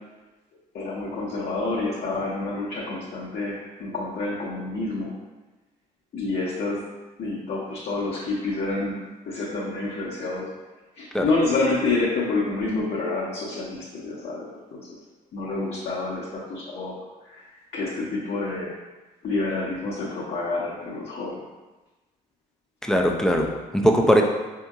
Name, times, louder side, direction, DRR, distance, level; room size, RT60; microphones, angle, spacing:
voice 1, 0.7-5.1 6.1-6.8 7.2-10.5 11.0-14.9 15.3-16.9 17.2-17.4 17.7-18.7 19.2-21.4, left 3 dB, 50° left, -6 dB, 0.8 m, -28 dB
voice 2, 22.8-24.2, equal, 5° left, 2 dB, 0.5 m, -20 dB
4.4 x 2.8 x 2.4 m, 1.2 s
hypercardioid pair, 50°, 21 cm